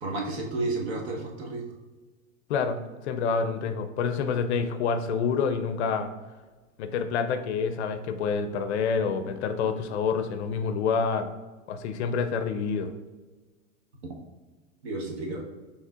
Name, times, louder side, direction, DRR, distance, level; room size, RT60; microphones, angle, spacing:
voice 1, 0.0-1.8 14.0-14.1 14.8-15.4, right 2 dB, 50° right, 0 dB, 1.1 m, -32 dB
voice 2, 3.1-6.1 6.8-11.3 11.7-12.9, left 5 dB, 55° left, 9 dB, 0.5 m, -27 dB
5.3 x 3.3 x 2.4 m, 1.3 s
hypercardioid pair, 120°, 40 cm